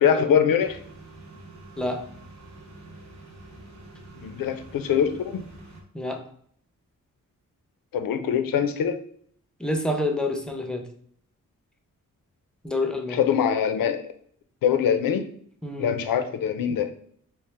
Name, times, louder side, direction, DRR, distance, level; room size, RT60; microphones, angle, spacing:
voice 1, 0.0-0.8 4.2-5.4 7.9-9.0 13.1-14.0 14.6-15.2 15.8-16.9, left 8 dB, 85° left, 8 dB, 0.5 m, -23 dB
sound 1, 0.6-5.8, right 2 dB, 55° right, 0.8 m, -46 dB
voice 2, 9.6-10.8 12.6-13.2 15.6-16.0, left 1 dB, ahead, 4 dB, 0.5 m, -28 dB
4.2 x 2.1 x 3.2 m, 0.62 s
wide cardioid pair, 90°, 33 cm